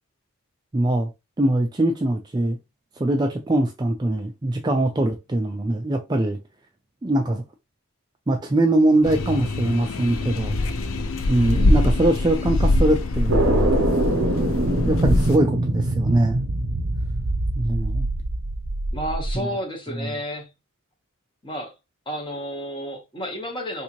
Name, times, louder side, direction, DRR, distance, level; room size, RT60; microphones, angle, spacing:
voice 1, 0.7-1.1 1.4-2.6 3.0-6.4 7.0-7.4 8.3-10.6 11.3-13.7 14.8-16.5 17.6-18.1 20.0-20.1, right 1 dB, 20° right, 0.3 m, -22 dB
sound 1, 9.0-15.4, left 1 dB, 70° left, 0.5 m, -23 dB
voice 2, 11.4-11.9 18.9-20.5 21.4-21.7 22.1-23.8, equal, 20° left, 1.0 m, -31 dB
sound 2, 13.3-19.4, right 1 dB, 70° right, 0.7 m, -24 dB
3.5 x 2.6 x 2.9 m
head